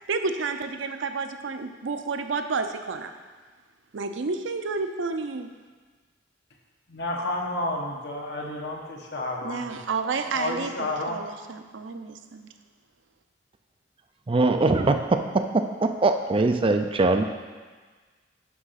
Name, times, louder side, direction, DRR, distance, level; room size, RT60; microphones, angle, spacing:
voice 1, 0.1-3.1 3.9-5.5 9.4-12.5, right 4 dB, 75° right, 7 dB, 0.6 m, -30 dB
voice 2, 6.9-9.8 10.3-11.2, left 2 dB, 60° left, -1 dB, 1.3 m, -31 dB
voice 3, 14.3-17.2, right 3 dB, 30° right, 7 dB, 0.4 m, -22 dB
6.2 x 6.1 x 5.7 m, 1.4 s
head